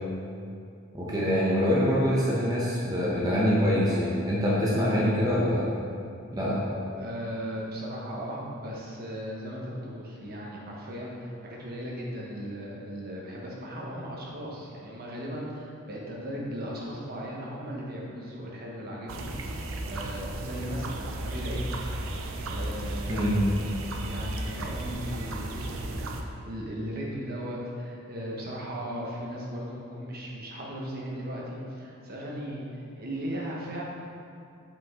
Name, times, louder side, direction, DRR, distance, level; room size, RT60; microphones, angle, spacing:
voice 1, 0.9-5.7 6.3-6.6 23.1-23.4, equal, 20° right, -7 dB, 0.9 m, -25 dB
voice 2, 6.9-21.6 22.5-33.8, equal, 45° right, -3 dB, 1.2 m, -37 dB
sound 1, 19.1-26.2, right 1 dB, 75° right, 0.6 m, -34 dB
8.0 x 5.3 x 3.7 m, 2.5 s
head